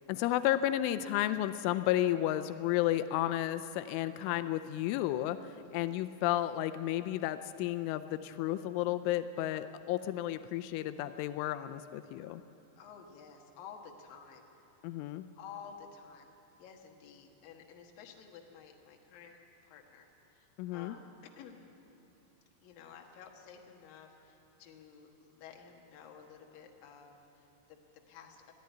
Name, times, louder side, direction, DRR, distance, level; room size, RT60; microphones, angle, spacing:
voice 1, 0.0-12.4 14.8-15.3 20.6-21.0, left 13 dB, 85° left, 10 dB, 3.1 m, -32 dB
voice 2, 12.8-14.5 14.8-14.9 15.4-19.4 19.6-21.1 21.3-21.7 22.6-28.5, left 7 dB, 60° left, 1 dB, 2.8 m, -52 dB
22.0 x 14.0 x 9.4 m, 3.0 s
omnidirectional pair, 5.5 m